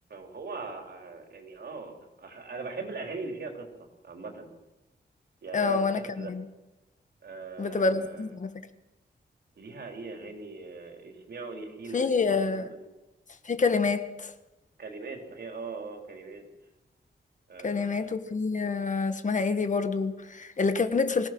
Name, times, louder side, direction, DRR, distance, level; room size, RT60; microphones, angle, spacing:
voice 1, 0.1-3.7 4.0-4.5 5.4-6.3 7.2-8.3 9.6-12.4 12.7-12.9 14.8-16.4 17.5-18.0, right 4 dB, 65° right, 4.0 m, -40 dB
voice 2, 5.5-6.5 7.6-8.5 11.9-12.7 13.4-14.3 17.6-21.3, left 4 dB, 45° left, 1.4 m, -27 dB
25.0 x 17.5 x 6.2 m
wide cardioid pair, 175°, 18 cm